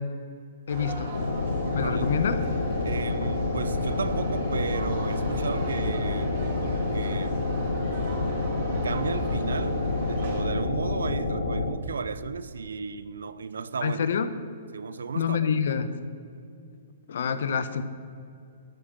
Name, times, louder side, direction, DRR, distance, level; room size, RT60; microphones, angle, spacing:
voice 1, 0.7-1.2 1.7-2.4 3.2-3.3 13.8-14.3 15.1-15.9 17.1-17.8, left 7 dB, 65° left, 0.7 m, -26 dB
sound 1, 0.7-10.4, right 2 dB, 55° right, 2.1 m, -37 dB
sound 2, 1.1-11.7, left 2 dB, 85° left, 1.1 m, -28 dB
voice 2, 1.8-2.1 2.8-6.4 6.6-7.4 8.8-14.0 14.7-15.5, right 5 dB, 80° right, 0.5 m, -34 dB
12.0 x 5.1 x 6.7 m
hypercardioid pair, 135°, 0 cm